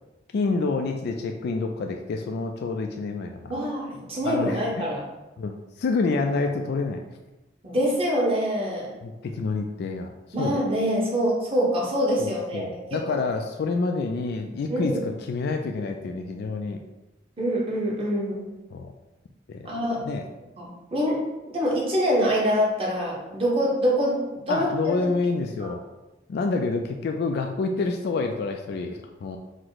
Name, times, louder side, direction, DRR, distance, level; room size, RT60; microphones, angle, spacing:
voice 1, 0.3-3.5 4.2-4.9 5.4-7.0 9.0-10.1 10.4-10.6 12.2-16.8 18.7-18.9 19.5-19.7 20.0-20.2 24.5-25.8 26.3-29.4, left 3 dB, 55° left, 3 dB, 0.3 m, -28 dB
voice 2, 3.5-5.0 7.6-8.9 10.3-12.8 14.7-15.0 17.4-18.5 19.6-20.0 20.6-21.2 21.5-25.0 25.6-25.7, equal, 30° right, -4 dB, 1.1 m, -25 dB
4.6 x 2.1 x 4.0 m, 1.1 s
head